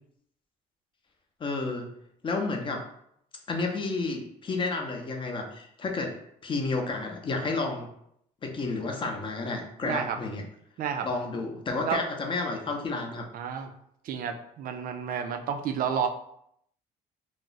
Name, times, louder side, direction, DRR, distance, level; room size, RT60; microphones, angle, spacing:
voice 1, 1.4-1.9 2.2-2.8 3.5-6.1 6.4-7.9 8.4-10.4 11.0-13.2, left 3 dB, 30° left, 3 dB, 0.6 m, -31 dB
voice 2, 9.8-10.2 10.8-11.1 11.8-12.0 13.3-13.7 14.0-16.1, right 7 dB, 55° right, 6 dB, 0.4 m, -30 dB
2.4 x 2.0 x 3.8 m, 0.72 s
cardioid pair, 110°, 17 cm